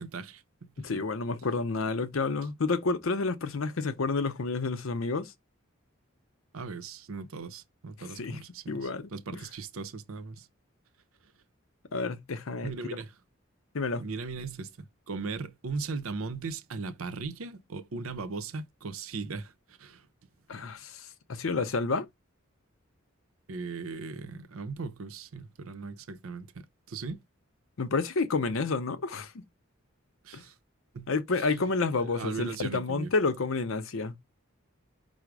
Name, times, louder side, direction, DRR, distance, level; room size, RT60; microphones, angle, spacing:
voice 1, 0.0-1.0 6.5-10.5 12.6-13.1 14.0-19.5 19.8-20.1 23.5-27.2 30.2-30.5 30.9-31.1 31.4-31.7 32.0-33.1, right 4 dB, 90° right, 0.6 m, -38 dB
voice 2, 0.8-5.3 8.2-8.4 8.7-9.4 11.9-13.0 13.7-14.0 20.5-22.1 27.8-29.4 30.3-30.4 31.1-34.1, left 3 dB, 70° left, 0.7 m, -30 dB
4.9 x 2.0 x 4.6 m
head